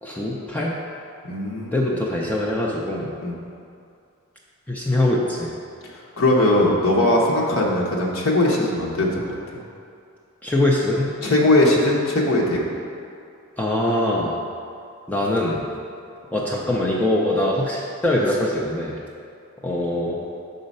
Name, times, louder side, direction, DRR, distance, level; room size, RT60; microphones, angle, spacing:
voice 1, 0.0-0.8 1.7-3.1 4.7-5.5 10.4-11.1 13.6-14.3 15.1-15.7 16.3-19.0 19.6-20.2, left 1 dB, 5° left, -4 dB, 0.4 m, -23 dB
voice 2, 1.2-1.9 3.2-3.4 5.8-9.4 11.2-12.6, left 1 dB, 70° left, -3 dB, 1.0 m, -20 dB
6.2 x 3.9 x 5.4 m, 2.5 s
head